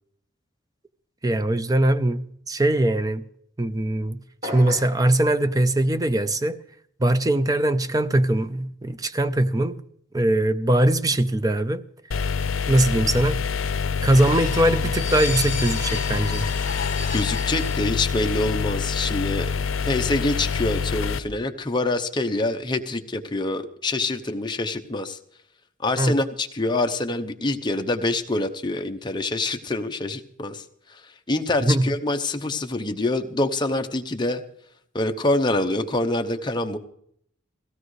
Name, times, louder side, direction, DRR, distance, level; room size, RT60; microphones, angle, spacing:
voice 1, 1.2-3.2 3.6-6.6 7.0-9.8 10.1-11.8 12.7-13.4 14.0-16.4 26.0-26.2 31.7-31.9, right 1 dB, 20° right, 0.5 m, -21 dB
sound 1, 4.4-5.1, left 1 dB, 35° right, 2.4 m, -33 dB
sound 2, 12.1-21.2, left 6 dB, 80° left, 0.6 m, -26 dB
sound 3, 14.2-18.5 18.8-19.0, left 5 dB, 40° left, 1.4 m, -33 dB
voice 2, 17.1-19.5 19.8-25.2 25.8-34.4 34.9-36.8, left 2 dB, 20° left, 0.8 m, -26 dB
17.5 x 16.0 x 3.2 m
head